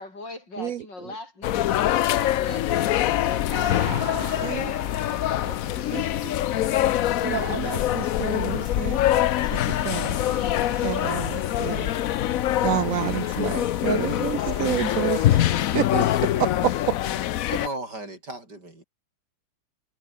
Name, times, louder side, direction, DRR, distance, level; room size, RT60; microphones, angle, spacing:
voice 1, 0.0-6.7, left 2 dB, 60° left, 8.5 m, -42 dB
sound 1, 1.4-17.7, left 13 dB, 80° left, 0.7 m, -24 dB
sound 2, 3.5-15.8, right 1 dB, 20° right, 7.0 m, -42 dB
voice 2, 4.4-4.7 5.9-6.0 7.2-9.0 9.5-10.2 10.8-11.9 12.6-17.0, right 10 dB, 80° right, 0.7 m, -29 dB
voice 3, 17.5-18.8, right 2 dB, 55° right, 7.5 m, -35 dB
omnidirectional pair, 2.2 m